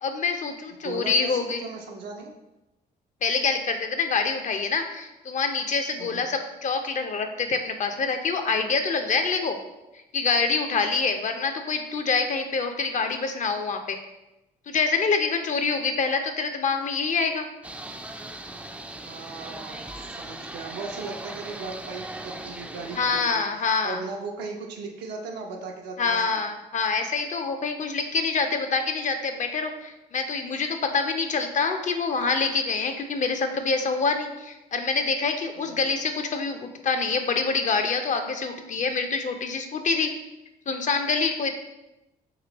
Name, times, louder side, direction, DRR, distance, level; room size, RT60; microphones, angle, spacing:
voice 1, 0.0-1.6 3.2-9.6 10.1-14.0 14.7-17.5 23.0-24.0 26.0-40.1 40.7-41.5, left 4 dB, 45° left, 6 dB, 0.5 m, -26 dB
voice 2, 0.7-2.3 6.0-6.2 19.0-26.4 35.6-36.0, right 4 dB, 80° right, 2 dB, 0.6 m, -38 dB
sound 1, 17.6-23.2, right 1 dB, 10° right, 0.3 m, -39 dB
3.0 x 2.8 x 3.9 m, 0.97 s
supercardioid pair, 65°, 17 cm